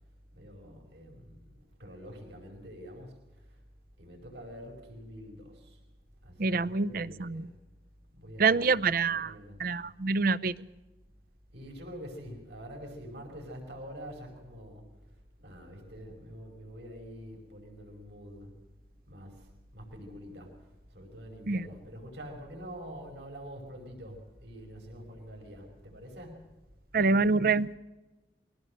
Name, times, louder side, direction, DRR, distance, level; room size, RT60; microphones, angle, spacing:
voice 1, 0.4-1.5 1.8-3.1 4.0-5.8 6.2-7.5 8.2-9.6 11.5-14.8 15.4-18.5 19.1-19.5 19.7-20.5 20.9-26.6, equal, 70° right, 1 dB, 5.3 m, -46 dB
voice 2, 6.4-7.4 8.4-9.3 9.6-10.5 21.5-21.6 26.9-27.8, right 4 dB, 50° right, 16 dB, 0.6 m, -26 dB
23.0 x 17.5 x 6.5 m, 1.1 s
head